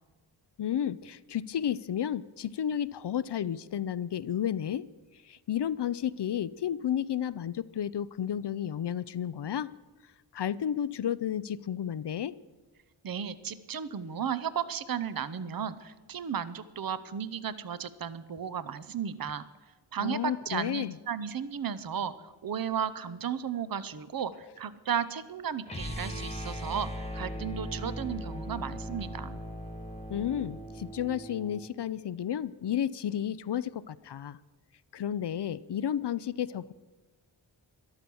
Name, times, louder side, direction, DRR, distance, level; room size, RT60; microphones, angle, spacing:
voice 1, 0.6-4.8 5.3-9.7 10.3-12.3 20.0-20.9 30.1-34.4 34.9-36.7, left 9 dB, 60° left, 18 dB, 0.5 m, -32 dB
voice 2, 13.0-19.4 19.9-29.4, right 8 dB, 45° right, 15 dB, 0.7 m, -34 dB
sound 1, 25.7-31.7, equal, 15° left, 1.3 m, -39 dB
13.0 x 11.5 x 7.0 m, 1.2 s
wide cardioid pair, 85°, 47 cm